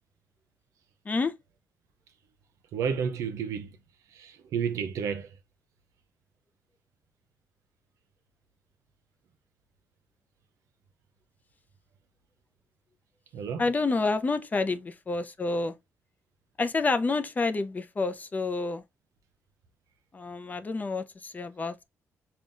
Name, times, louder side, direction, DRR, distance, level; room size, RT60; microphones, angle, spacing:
voice 1, 2.7-3.8 4.1-5.4 13.3-13.7, right 7 dB, 90° right, 0.6 m, -31 dB
voice 2, 13.6-15.7 16.6-18.8 20.1-21.8, left 3 dB, 30° left, 0.5 m, -28 dB
5.3 x 2.3 x 2.5 m
cardioid pair, 100°, 5 cm